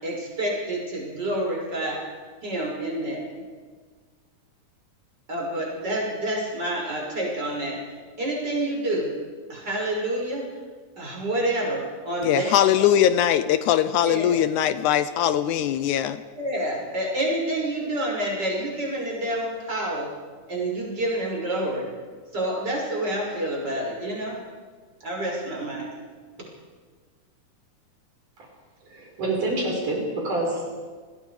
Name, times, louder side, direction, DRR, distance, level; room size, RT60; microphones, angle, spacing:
voice 1, 0.0-2.0 2.4-3.4 5.3-7.8 8.2-9.1 9.5-10.5 11.0-13.0 14.0-14.4 16.4-20.1 20.5-21.9 22.3-24.4 25.0-25.9, right 1 dB, 30° right, -2 dB, 6.7 m, -28 dB
voice 2, 12.2-16.2, left 11 dB, 75° left, 12 dB, 2.1 m, -21 dB
voice 3, 28.8-30.9, right 2 dB, 75° right, -1 dB, 7.1 m, -27 dB
29.0 x 21.0 x 5.0 m, 1.5 s
omnidirectional pair, 3.6 m